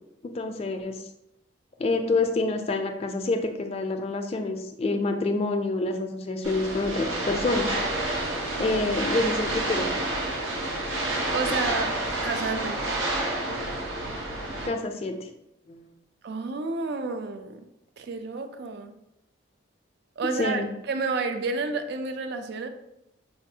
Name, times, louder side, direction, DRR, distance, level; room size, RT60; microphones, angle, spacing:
voice 1, 0.3-1.0 1.8-7.8 8.6-9.9 14.6-15.3 15.7-15.9 20.4-20.7, left 2 dB, 30° left, 5 dB, 0.3 m, -27 dB
sound 1, 6.4-14.7, right 2 dB, 90° right, 0.9 m, -29 dB
voice 2, 11.3-12.0 12.2-12.8 16.2-17.6 18.0-18.9 20.2-22.7, right 4 dB, 55° right, 8 dB, 0.3 m, -30 dB
4.3 x 2.3 x 2.7 m, 0.84 s
head